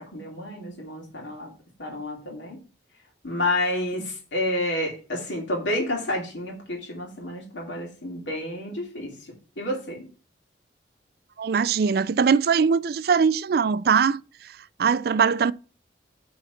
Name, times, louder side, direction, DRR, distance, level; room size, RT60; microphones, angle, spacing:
voice 1, 0.0-1.5 1.8-2.6 3.2-10.1, left 1 dB, 80° left, 2.6 m, -30 dB
voice 2, 11.4-14.2 14.8-15.5, right 6 dB, 55° right, 0.3 m, -21 dB
9.1 x 4.0 x 5.8 m
head